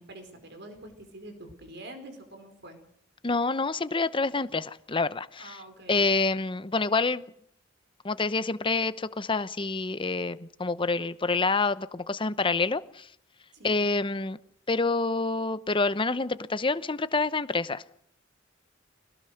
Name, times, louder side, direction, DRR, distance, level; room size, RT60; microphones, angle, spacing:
voice 1, 0.0-2.8 5.4-6.0 13.5-13.8, right 1 dB, 60° right, 7 dB, 4.7 m, -46 dB
voice 2, 3.2-5.6 5.9-7.2 8.0-13.1 13.6-14.4 14.7-17.8, left 3 dB, 25° left, 14 dB, 0.8 m, -27 dB
25.0 x 18.5 x 6.5 m, 0.69 s
head